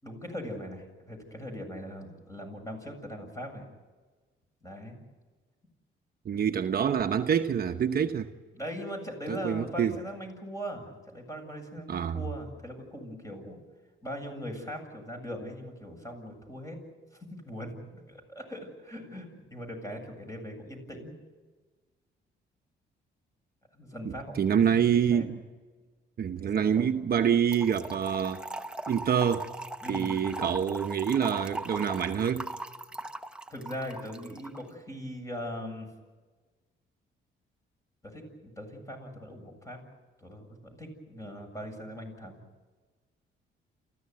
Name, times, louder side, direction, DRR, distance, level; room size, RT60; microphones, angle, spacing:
voice 1, 0.0-3.6 4.6-5.0 8.5-13.6 14.0-16.8 17.3-17.7 18.1-21.1 23.7-24.3 25.1-25.3 26.5-26.9 29.8-30.2 33.5-35.9 38.0-39.8 40.2-42.4, equal, 15° left, 7.6 m, -40 dB
voice 2, 6.2-8.3 9.3-10.0 11.9-12.2 24.0-25.4 26.2-28.4 28.9-29.5 29.9-32.5, right 8 dB, 50° right, 1.0 m, -26 dB
Trickle dribble / Fill (with liquid), 27.5-34.6, right 2 dB, 5° right, 1.0 m, -39 dB
28.0 x 15.5 x 9.6 m
cardioid pair, 90°, 20 cm